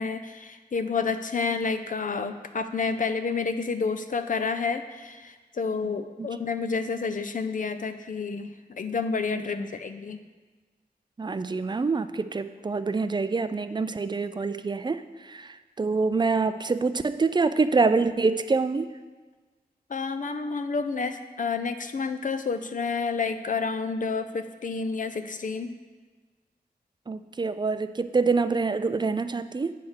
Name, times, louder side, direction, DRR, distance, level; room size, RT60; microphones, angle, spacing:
voice 1, 0.0-10.2 19.9-25.7, left 4 dB, 55° left, 9 dB, 0.5 m, -29 dB
voice 2, 11.2-18.9 27.1-29.8, right 4 dB, 25° right, 11 dB, 0.4 m, -26 dB
8.0 x 3.4 x 6.3 m, 1.3 s
cardioid pair, 55°, 17 cm